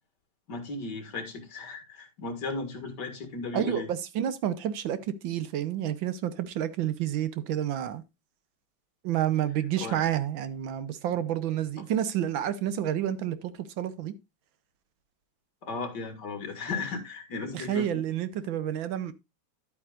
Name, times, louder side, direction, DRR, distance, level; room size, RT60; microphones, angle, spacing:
voice 1, 0.5-3.9 9.8-10.0 11.8-11.9 15.6-18.0, left 3 dB, 55° left, 2.3 m, -36 dB
voice 2, 3.5-8.0 9.0-14.1 17.5-19.1, right 10 dB, 75° right, 1.6 m, -29 dB
11.5 x 8.5 x 2.4 m
omnidirectional pair, 2.2 m